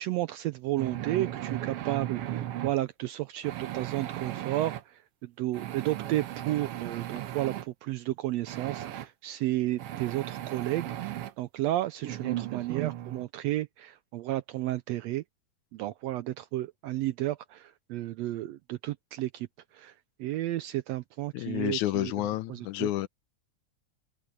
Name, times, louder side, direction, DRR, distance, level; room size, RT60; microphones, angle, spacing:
voice 1, 0.0-15.2 15.7-19.5 19.7-22.1 22.5-22.9, right 15 dB, 80° right, 1.5 m, -32 dB
sound 1, 0.8-2.7 3.4-4.8 5.5-7.7 8.5-9.1 9.8-11.3 12.0-13.3, right 13 dB, 65° right, 1.7 m, -36 dB
voice 2, 21.3-23.1, left 15 dB, 80° left, 2.2 m, -30 dB
omnidirectional pair, 3.4 m